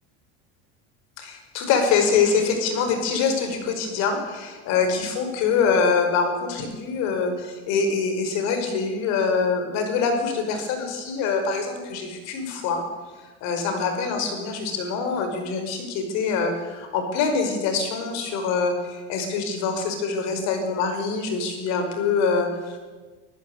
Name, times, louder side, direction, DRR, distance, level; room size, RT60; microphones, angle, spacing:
voice 1, 1.2-12.8 13.4-22.8, left 5 dB, 60° left, 6 dB, 5.3 m, -24 dB
25.5 x 14.5 x 8.2 m, 1.3 s
cardioid pair, 160°, 31 cm